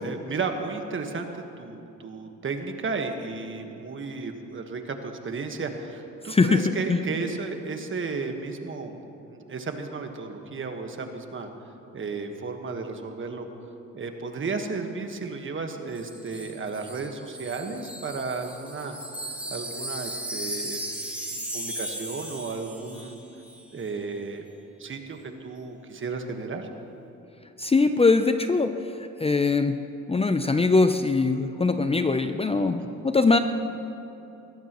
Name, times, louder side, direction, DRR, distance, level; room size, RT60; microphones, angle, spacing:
voice 1, 0.0-11.5 11.9-13.5 13.9-19.0 19.5-20.8 21.3-23.2 23.7-24.4 24.8-25.2 25.4-26.7 32.8-33.1, right 4 dB, 40° right, 5 dB, 1.5 m, -33 dB
voice 2, 6.3-7.0 27.6-28.7 29.2-29.8 30.1-33.4, left 3 dB, 20° left, 8 dB, 0.6 m, -22 dB
Wind chime, 15.9-23.2 23.4-23.6, right 1 dB, 5° right, 4.0 m, -36 dB
21.5 x 15.5 x 3.1 m, 2.8 s
cardioid pair, 90°, 30 cm